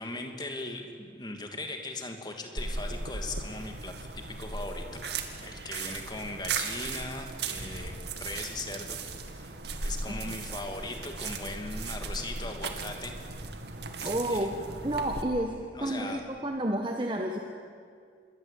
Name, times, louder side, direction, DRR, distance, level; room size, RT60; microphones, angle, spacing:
voice 1, 0.0-5.0 5.4-7.9 8.2-9.0 9.3-9.5 9.8-13.2 14.0-14.5 15.7-16.2, left 2 dB, 25° left, 4 dB, 2.7 m, -39 dB
sound 1, 2.6-15.2, right 4 dB, 70° right, 2.2 m, -37 dB
voice 2, 14.0-14.5 14.8-15.5 15.8-17.4, right 1 dB, 25° right, 3 dB, 1.4 m, -30 dB
26.5 x 22.5 x 8.6 m, 2.2 s
head